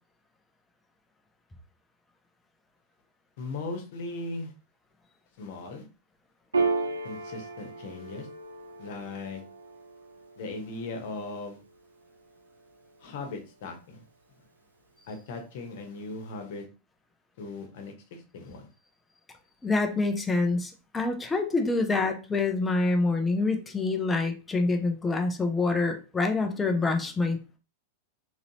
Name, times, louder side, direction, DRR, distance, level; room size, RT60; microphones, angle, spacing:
voice 1, 3.4-4.5 5.4-5.8 7.0-8.3 8.8-9.4 10.4-11.6 13.0-14.0 15.1-16.7 17.4-18.7, left 3 dB, 50° left, 4 dB, 1.1 m, -38 dB
Piano, 6.5-13.5, right 3 dB, 75° right, 0.5 m, -35 dB
voice 2, 19.6-27.4, left 3 dB, 10° left, 4 dB, 0.7 m, -26 dB
3.9 x 2.9 x 2.8 m, 0.32 s
figure-of-eight pair, 90°, 0 cm